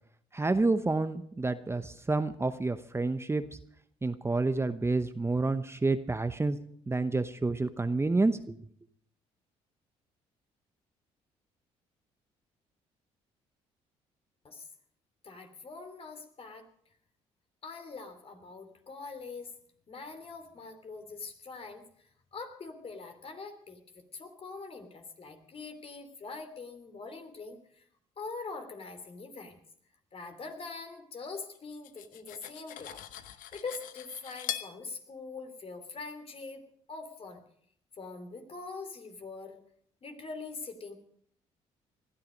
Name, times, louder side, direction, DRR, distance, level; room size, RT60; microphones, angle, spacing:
voice 1, 0.3-3.4 4.0-6.6 6.9-8.6, right 3 dB, 20° right, 11 dB, 0.9 m, -29 dB
voice 2, 15.2-16.7 17.6-19.5 19.9-27.8 28.2-29.6 30.1-33.0 33.3-36.6 36.9-37.4 37.9-39.6 40.0-41.0, left 4 dB, 45° left, 7 dB, 3.2 m, -43 dB
Cutlery silverware, 31.5-34.7, left 12 dB, 75° left, 1.0 m, -41 dB
20.0 x 13.0 x 5.3 m, 0.65 s
supercardioid pair, 60°, 14 cm